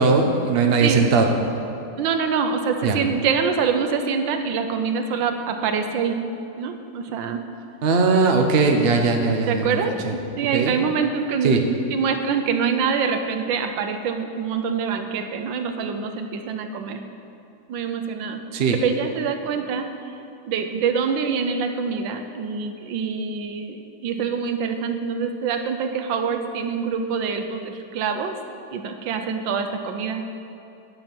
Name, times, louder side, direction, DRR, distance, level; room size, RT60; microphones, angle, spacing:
voice 1, 0.0-1.3 2.8-3.0 7.8-10.1 10.5-10.7 11.4-11.6 18.5-18.8, right 4 dB, 45° right, 3 dB, 0.9 m, -19 dB
voice 2, 2.0-6.2 6.6-7.4 9.5-11.6 11.9-17.0 17.7-18.4 18.8-19.9 20.5-28.4 28.7-30.2, right 6 dB, 85° right, 6 dB, 1.5 m, -25 dB
10.5 x 7.2 x 6.0 m, 2.6 s
omnidirectional pair, 2.0 m